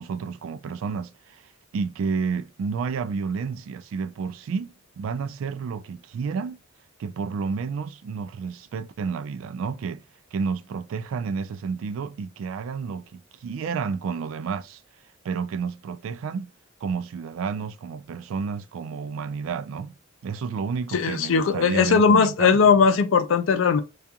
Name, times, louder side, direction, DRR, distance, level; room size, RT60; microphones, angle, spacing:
voice 1, 0.0-6.6 7.0-10.0 10.3-14.8 15.2-16.5 16.8-20.0 20.2-22.8, right 5 dB, 90° right, 0.3 m, -31 dB
voice 2, 20.9-23.8, left 5 dB, 80° left, 0.4 m, -19 dB
2.3 x 2.3 x 2.7 m
head